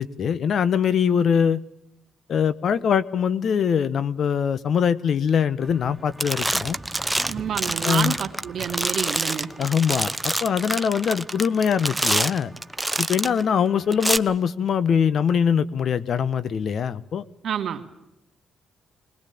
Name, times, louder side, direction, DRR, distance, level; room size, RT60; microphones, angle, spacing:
voice 1, 0.0-1.6 2.3-6.8 7.8-8.2 9.6-12.5 13.0-17.2, left 7 dB, 60° left, 15 dB, 1.2 m, -22 dB
sound 1, 5.7-5.9 6.2-13.4 13.9-14.2, right 1 dB, 10° right, 1.0 m, -27 dB
voice 2, 7.3-9.5 17.4-17.9, right 8 dB, 65° right, 6 dB, 3.0 m, -29 dB
21.5 x 21.5 x 8.7 m, 0.84 s
cardioid pair, 90°, 0 cm